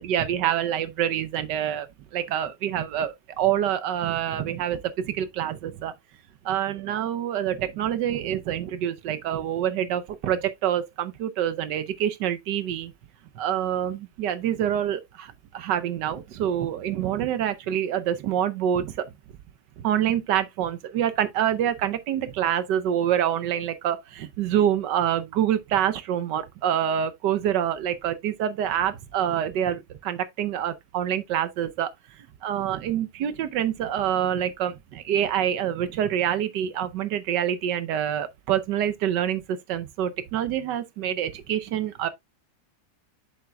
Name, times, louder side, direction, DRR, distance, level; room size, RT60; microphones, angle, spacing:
voice 1, 0.0-1.9 2.1-5.9 6.4-12.9 13.3-19.1 19.8-31.9 32.4-42.1, right 10 dB, 70° right, 1.3 m, -26 dB
7.5 x 7.2 x 2.2 m
omnidirectional pair, 2.1 m